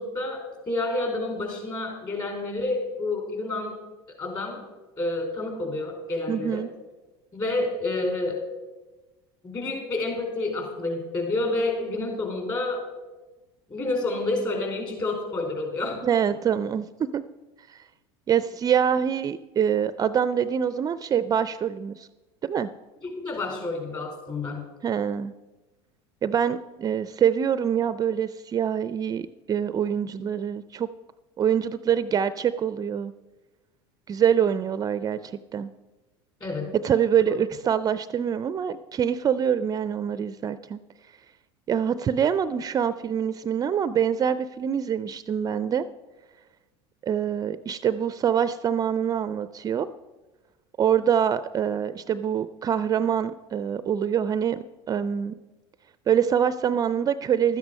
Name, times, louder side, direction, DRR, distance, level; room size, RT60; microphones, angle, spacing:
voice 1, 0.0-3.8 4.2-4.6 5.0-6.6 7.3-8.4 9.4-12.8 13.7-16.0 23.0-24.6 36.4-36.7 37.3-37.4, left 2 dB, 30° left, 2 dB, 4.2 m, -29 dB
voice 2, 6.3-6.7 16.0-17.2 17.7-17.8 18.3-22.1 22.4-22.7 24.8-25.3 26.2-30.9 31.4-33.1 34.1-35.7 36.8-40.8 41.7-45.9 47.0-49.9 50.8-55.3 56.1-57.6, right 8 dB, 30° right, 14 dB, 0.4 m, -25 dB
12.5 x 9.4 x 5.3 m, 1.2 s
supercardioid pair, 100°, 13 cm